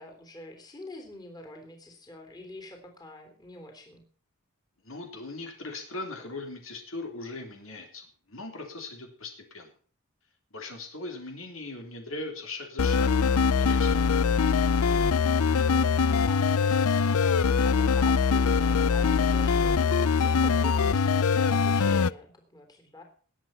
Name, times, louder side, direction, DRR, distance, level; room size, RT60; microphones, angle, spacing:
voice 1, 0.0-4.0 15.6-23.0, left 1 dB, 20° left, 4 dB, 3.5 m, -46 dB
voice 2, 4.8-9.7 10.5-13.9, left 2 dB, 65° left, 3 dB, 3.5 m, -39 dB
sound 1, 12.8-22.1, left 5 dB, 85° left, 0.6 m, -23 dB
20.0 x 8.2 x 5.7 m, 0.43 s
head